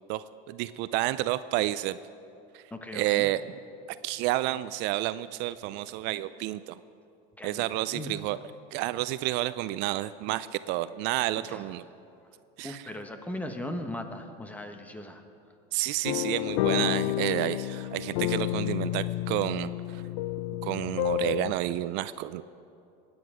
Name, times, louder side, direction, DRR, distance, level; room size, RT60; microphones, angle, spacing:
voice 1, 0.1-2.0 2.5-2.6 2.9-3.4 4.0-6.8 7.4-8.4 8.7-11.8 12.6-12.8 15.7-20.0 20.6-22.4, right 16 dB, 60° right, 15 dB, 0.4 m, -30 dB
voice 2, 2.7-3.3 7.4-8.3 11.4-11.7 12.6-15.2, left 1 dB, 5° left, 6 dB, 1.1 m, -38 dB
sound 1, 16.0-21.5, left 15 dB, 85° left, 0.4 m, -30 dB
22.5 x 9.7 x 5.0 m, 2.6 s
supercardioid pair, 130°, 20 cm